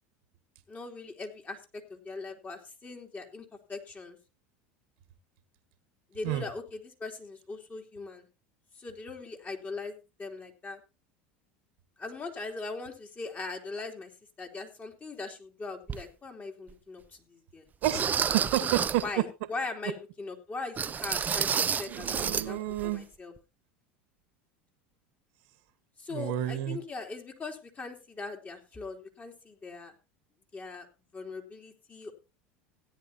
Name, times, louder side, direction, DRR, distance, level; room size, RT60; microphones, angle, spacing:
voice 1, 0.7-1.6 1.9-4.2 6.1-8.3 8.8-10.8 12.0-14.1 14.4-17.6 19.0-21.5 21.8-23.3 26.0-29.9 30.5-30.9 31.1-32.1, left 3 dB, 25° left, 3 dB, 3.2 m, -40 dB
sound 1, 15.9-16.0 16.7-16.8 17.8-19.1 20.8-22.5 22.7-22.9 23.4-23.5, right 7 dB, 30° right, 0.6 m, -30 dB
voice 2, 17.8-19.0 21.9-23.0 26.1-26.8, right 13 dB, 70° right, 11 dB, 1.6 m, -30 dB
16.5 x 10.0 x 2.9 m, 0.28 s
hypercardioid pair, 90°, 6 cm